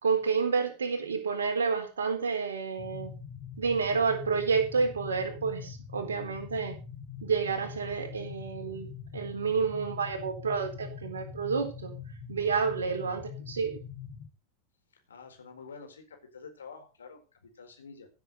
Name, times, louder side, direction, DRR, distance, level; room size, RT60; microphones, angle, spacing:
voice 1, 0.0-3.1 3.6-6.8 7.2-12.0 12.3-13.8, right 5 dB, 70° right, 5 dB, 4.0 m, -29 dB
sound 1, 2.8-14.3, left 7 dB, 25° left, 2.6 m, -43 dB
voice 2, 15.1-18.1, left 5 dB, 70° left, 5 dB, 4.5 m, -48 dB
16.0 x 7.8 x 6.6 m, 0.33 s
figure-of-eight pair, 90°, 0 cm